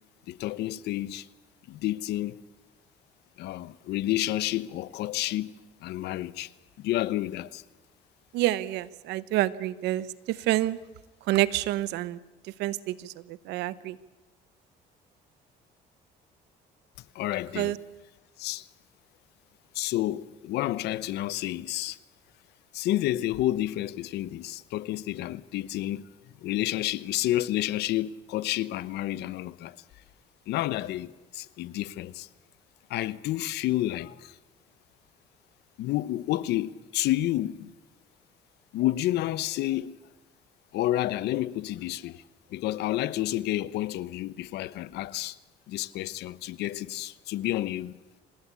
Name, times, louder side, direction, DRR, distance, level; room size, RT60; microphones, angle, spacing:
voice 1, 0.3-1.3 1.7-2.4 3.4-5.5 5.8-6.5 6.8-7.6 17.1-17.8 18.4-18.7 19.7-22.0 22.7-26.1 26.4-29.8 30.5-32.3 32.9-34.4 35.8-37.7 38.7-40.0 40.7-42.2 42.5-45.4 45.7-48.0, left 15 dB, 80° left, 1.0 m, -30 dB
voice 2, 8.3-10.0 10.5-10.8 11.3-12.2 12.6-12.9 13.5-13.9 17.6-17.8, right 16 dB, 90° right, 1.0 m, -27 dB
26.5 x 19.5 x 8.4 m
cardioid pair, 110°, 17 cm